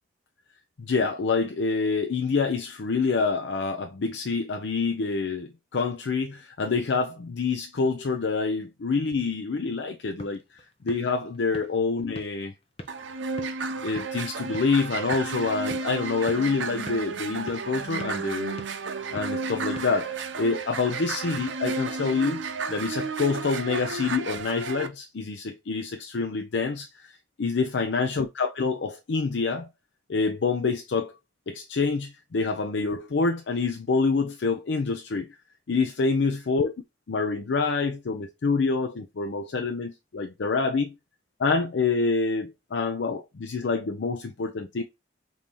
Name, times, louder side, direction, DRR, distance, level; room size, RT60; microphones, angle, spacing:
voice 1, 0.8-12.5 13.8-18.6 19.1-29.7 30.1-31.1 31.5-35.3 35.7-36.7 37.1-41.0 41.4-44.8, left 4 dB, 70° left, 0.5 m, -27 dB
sound 1, 9.8-20.7, left 1 dB, 30° left, 0.7 m, -46 dB
sound 2, 12.9-24.9, right 4 dB, 80° right, 0.6 m, -33 dB
5.3 x 2.7 x 3.0 m
head